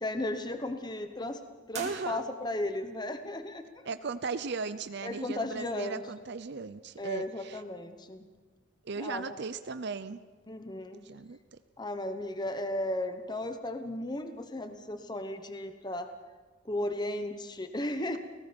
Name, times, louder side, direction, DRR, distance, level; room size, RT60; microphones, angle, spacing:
voice 1, 0.0-1.4 1.7-3.7 5.0-6.0 7.0-8.2 9.0-9.3 10.5-11.1 11.8-16.1 16.6-18.2, left 1 dB, 20° left, 8 dB, 1.0 m, -35 dB
sound 1, 1.7-2.7, right 5 dB, 35° right, 2.9 m, -44 dB
voice 2, 1.7-2.2 3.9-7.6 8.8-10.2 11.0-11.6, right 4 dB, 55° right, 12 dB, 0.6 m, -37 dB
29.5 x 18.0 x 5.3 m, 1.4 s
head